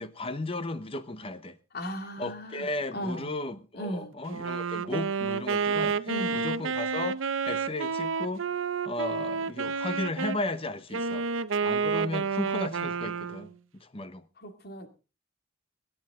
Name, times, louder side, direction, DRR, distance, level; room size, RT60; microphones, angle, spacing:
voice 1, 0.0-1.6 2.2-7.2 7.5-8.5 8.8-11.3 11.6-14.2, left 2 dB, 30° left, 0.9 m, -35 dB
voice 2, 1.7-2.7 2.9-3.3 3.7-4.1 6.1-6.4 14.4-14.9, equal, 50° left, 2.3 m, -36 dB
Wind instrument woodwind instrument, 4.3-10.4 10.9-13.6, right 5 dB, 80° right, 0.7 m, -30 dB
24.5 x 9.7 x 3.7 m
head